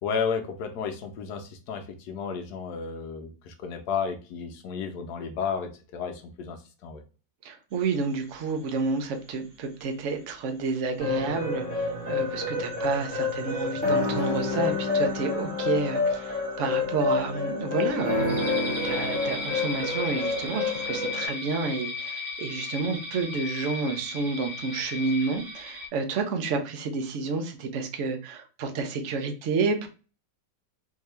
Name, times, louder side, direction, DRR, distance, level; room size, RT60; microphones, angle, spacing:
voice 1, 0.0-6.6 6.8-7.0, left 6 dB, 70° left, 5 dB, 1.2 m, -32 dB
voice 2, 7.4-29.9, right 4 dB, 60° right, 5 dB, 0.7 m, -30 dB
sound 1, 7.7-9.3 9.8-9.9 10.3-10.4 11.8-25.9, left 3 dB, 30° right, 0.9 m, -38 dB
sound 2, 11.0-21.3, left 4 dB, 5° left, 1.2 m, -28 dB
3.6 x 2.7 x 3.2 m, 0.34 s
omnidirectional pair, 1.9 m